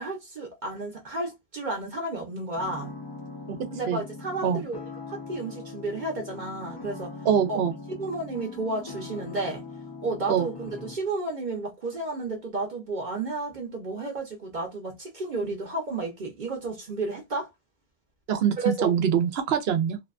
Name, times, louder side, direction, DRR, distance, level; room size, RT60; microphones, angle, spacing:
voice 1, 0.0-2.9 3.8-4.8 5.1-7.1 7.5-7.6 8.0-9.6 10.0-17.5 18.6-18.9, right 2 dB, 50° right, 0.8 m, -32 dB
sound 1, 2.5-11.0, left 3 dB, 30° left, 0.6 m, -41 dB
voice 2, 3.5-4.0 4.4-4.6 7.2-7.7 10.3-10.5 18.3-20.0, right 8 dB, 80° right, 0.8 m, -24 dB
2.6 x 2.2 x 2.3 m
omnidirectional pair, 1.0 m